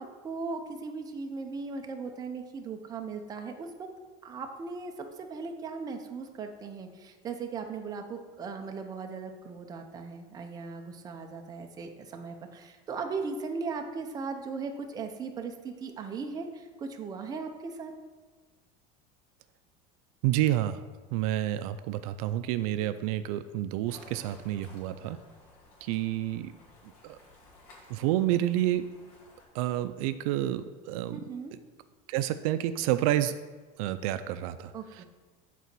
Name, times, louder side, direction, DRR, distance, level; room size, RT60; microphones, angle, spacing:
voice 1, 0.0-3.7 4.2-4.9 5.2-17.9 31.1-31.5 34.7-35.0, right 4 dB, 20° right, 4 dB, 0.7 m, -38 dB
voice 2, 20.2-20.8 21.1-25.2 25.8-26.6 27.0-27.2 27.9-28.8 29.5-31.3 32.1-33.3 33.8-35.0, right 13 dB, 80° right, 11 dB, 0.4 m, -29 dB
sound 1, 23.9-29.5, left 2 dB, 85° left, 2.3 m, -56 dB
8.3 x 4.1 x 6.0 m, 1.3 s
cardioid pair, 160°, 18 cm